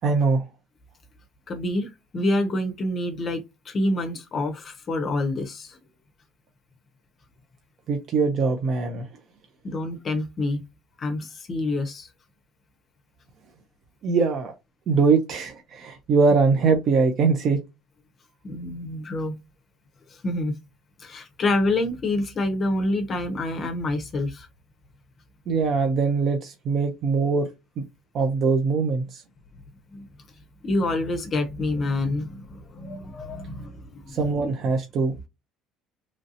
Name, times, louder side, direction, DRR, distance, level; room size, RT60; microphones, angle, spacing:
voice 1, 0.0-0.5 7.9-9.1 14.0-14.5 14.9-17.6 25.5-27.5 27.8-27.9 28.1-29.2 34.1-35.1, right 4 dB, 45° right, 0.5 m, -22 dB
voice 2, 1.5-5.8 9.6-10.6 11.0-12.1 18.4-19.4 20.1-20.5 21.0-24.5 29.9-30.1 30.6-34.2, left 2 dB, 35° left, 0.6 m, -27 dB
3.1 x 2.6 x 2.6 m
cardioid pair, 140°, 0 cm